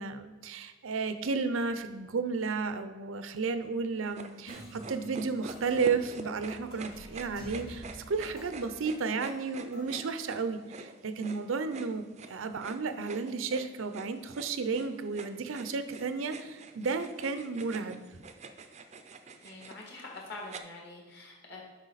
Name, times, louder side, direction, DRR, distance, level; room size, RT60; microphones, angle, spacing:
voice 1, 0.0-18.0, right 4 dB, 80° right, 10 dB, 0.6 m, -33 dB
sound 1, 4.1-20.6, right 4 dB, 35° right, 0.4 m, -46 dB
sound 2, 4.4-10.4, equal, 80° left, 2.1 m, -50 dB
voice 2, 19.4-21.6, left 2 dB, 55° left, -2 dB, 2.0 m, -45 dB
8.2 x 5.5 x 4.0 m, 1.3 s
head